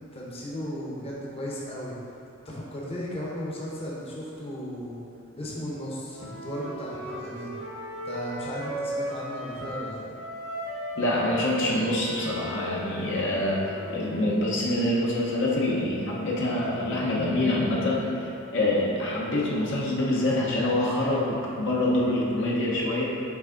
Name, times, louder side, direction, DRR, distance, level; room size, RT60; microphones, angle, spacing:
voice 1, 0.0-2.0 2.4-5.0 5.4-7.5 8.0-10.0, equal, 30° left, -5 dB, 0.9 m, -35 dB
Wind instrument woodwind instrument, 6.1-9.9 10.2-14.2, right 1 dB, 75° right, 1.1 m, -36 dB
voice 2, 10.9-23.1, left 1 dB, 60° left, -4 dB, 0.9 m, -26 dB
5.9 x 4.5 x 3.8 m, 2.8 s
head